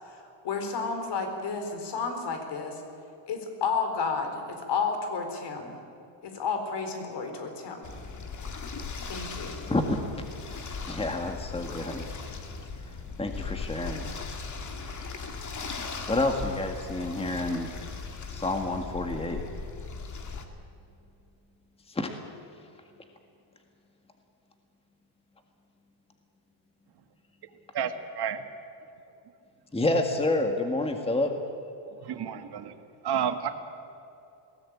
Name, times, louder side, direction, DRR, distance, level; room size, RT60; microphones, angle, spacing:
voice 1, 0.0-2.8 3.3-5.7 6.2-7.9 9.1-9.5, left 5 dB, 55° left, 6 dB, 4.2 m, -31 dB
sound 1, 7.8-20.4, left 4 dB, 35° left, 2.5 m, -38 dB
voice 2, 9.7-10.0 10.9-12.0 13.2-14.1 16.1-17.7 18.3-19.4 21.9-22.1 29.7-31.3, left 2 dB, 10° left, 4 dB, 1.8 m, -28 dB
voice 3, 27.7-28.4 32.0-32.7 33.0-33.5, right 8 dB, 50° right, 8 dB, 1.9 m, -30 dB
21.0 x 17.5 x 8.7 m, 2.8 s
cardioid pair, 120°, 49 cm